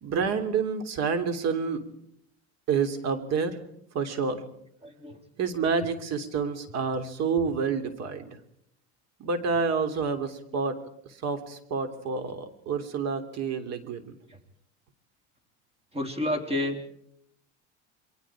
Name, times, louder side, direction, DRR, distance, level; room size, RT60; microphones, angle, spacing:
voice 1, 0.0-1.8 2.7-3.6 3.9-4.4 5.4-8.4 9.2-10.8 11.0-14.2, right 5 dB, 50° right, 8 dB, 3.2 m, -28 dB
voice 2, 4.8-5.2 15.9-16.8, left 1 dB, 20° right, 6 dB, 3.9 m, -29 dB
28.5 x 22.5 x 5.0 m, 0.72 s
supercardioid pair, 105°, 33 cm